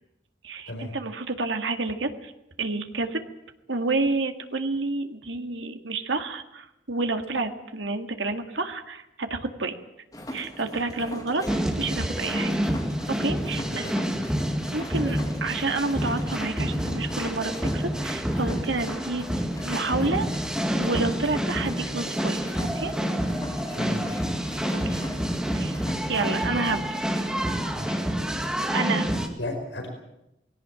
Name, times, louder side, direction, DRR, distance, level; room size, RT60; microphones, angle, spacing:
voice 1, 0.4-2.3 2.6-3.2 3.7-9.7 10.3-11.5 11.8-12.5 13.2-13.9 14.7-19.2 19.6-20.3 20.7-22.4 22.7-22.9 24.7-25.0 25.5-25.8 26.1-26.8 27.1-27.2 28.7-29.1, right 3 dB, 90° right, 6 dB, 2.0 m, -29 dB
sound 1, 10.1-27.0, equal, 20° left, 2.3 m, -39 dB
sound 2, 11.5-29.3, equal, 5° right, 2.1 m, -28 dB
voice 2, 13.5-14.3 23.7-24.3 27.7-28.0 29.4-29.9, left 1 dB, 80° left, 4 dB, 4.9 m, -36 dB
20.5 x 17.5 x 8.9 m, 0.86 s
head